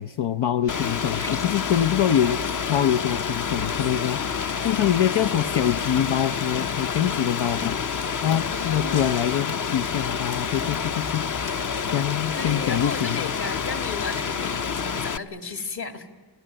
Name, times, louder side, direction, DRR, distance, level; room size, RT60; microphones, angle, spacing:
voice 1, 0.0-2.4 2.7-4.2 4.6-7.8 8.2-11.2 11.9-13.3, left 10 dB, 90° left, 8 dB, 0.7 m, -24 dB
sound 1, 0.6-2.0, left 1 dB, 5° left, 0.6 m, -42 dB
Rain, 0.7-15.2, left 6 dB, 45° left, 0.7 m, -28 dB
voice 2, 8.5-9.0 12.3-16.1, left 4 dB, 60° left, 7 dB, 2.3 m, -34 dB
27.5 x 16.0 x 8.9 m, 1.5 s
cardioid pair, 70°, 44 cm